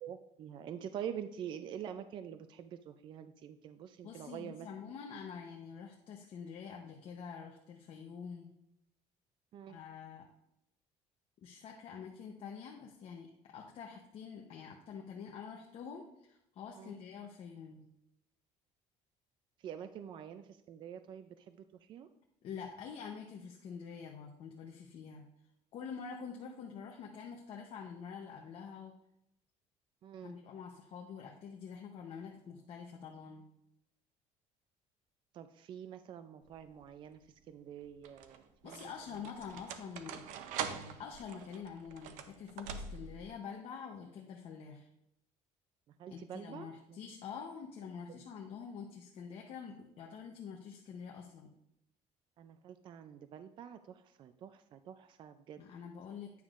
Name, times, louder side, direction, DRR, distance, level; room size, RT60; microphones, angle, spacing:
voice 1, 0.0-4.7 9.5-9.8 16.8-17.0 19.6-22.1 30.0-30.4 35.3-39.3 46.0-47.0 52.4-55.6, right 9 dB, 40° right, 10 dB, 0.4 m, -46 dB
voice 2, 4.0-8.5 9.7-10.3 11.4-17.8 22.4-25.2 25.7-28.9 30.2-33.4 38.6-40.2 40.7-44.9 46.1-51.5 55.6-56.4, left 6 dB, 50° left, 1 dB, 0.8 m, -46 dB
sound 1, 36.5-37.0 37.8-43.3, right 7 dB, 90° right, 0.6 m, -44 dB
9.3 x 6.9 x 2.5 m, 0.79 s
cardioid pair, 160°, 12 cm